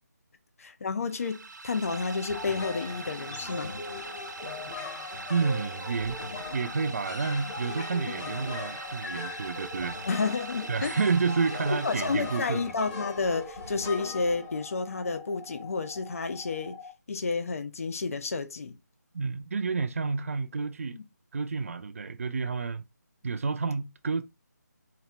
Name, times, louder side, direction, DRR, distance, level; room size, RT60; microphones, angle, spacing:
voice 1, 0.6-3.7 8.1-8.3 10.1-11.0 11.7-16.8 17.1-18.8 20.9-21.0, left 4 dB, 55° left, 0.5 m, -31 dB
sound 1, 1.1-12.9, right 3 dB, 85° right, 0.8 m, -43 dB
sound 2, 1.9-16.9, left 5 dB, 10° left, 0.7 m, -46 dB
sound 3, 2.3-15.0, left 3 dB, 30° left, 1.3 m, -41 dB
voice 2, 5.3-6.2 6.5-10.0 10.7-12.7 19.1-21.0 21.3-22.8 23.2-24.2, right 4 dB, 50° right, 0.4 m, -30 dB
4.1 x 2.5 x 3.1 m
figure-of-eight pair, 165°, 9 cm